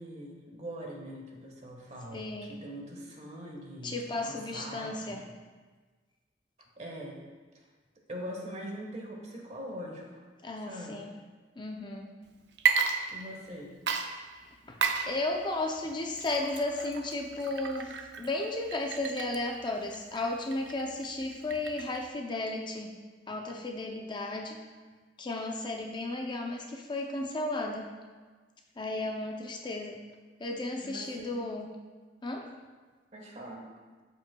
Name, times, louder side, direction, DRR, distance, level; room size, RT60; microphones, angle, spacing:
voice 1, 0.0-5.2 6.8-7.2 8.1-10.2 10.6-11.1 13.1-13.8 30.8-31.4 33.1-33.7, equal, 40° right, 0 dB, 1.3 m, -42 dB
voice 2, 2.1-2.5 3.8-5.2 10.4-11.1 11.6-12.1 14.6-14.8 15.1-22.9 23.3-24.6 25.2-27.9 28.8-30.0 30.4-31.7 32.2-32.5, left 2 dB, 25° left, 2 dB, 0.5 m, -34 dB
Water / Liquid, 12.5-13.5 13.9-22.1, right 6 dB, 65° right, 0.5 m, -33 dB
13.5 x 5.2 x 2.2 m, 1.4 s
head